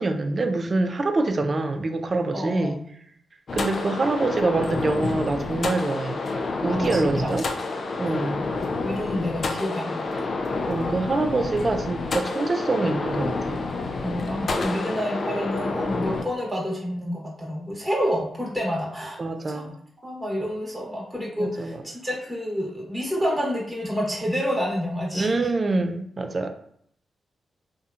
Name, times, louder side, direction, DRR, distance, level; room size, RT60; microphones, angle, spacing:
voice 1, 0.0-2.8 3.5-6.2 6.6-7.5 8.0-8.5 10.7-13.6 19.2-19.7 21.4-21.8 25.1-26.5, right 2 dB, 45° right, 6 dB, 0.3 m, -25 dB
voice 2, 2.3-2.8 6.7-7.3 8.8-10.4 14.0-19.2 19.5-19.6 20.0-25.4, equal, 5° right, -4 dB, 0.9 m, -28 dB
sound 1, 3.5-16.2, left 3 dB, 60° left, 0.3 m, -29 dB
2.7 x 2.1 x 2.4 m, 0.67 s
cardioid pair, 60°, 0 cm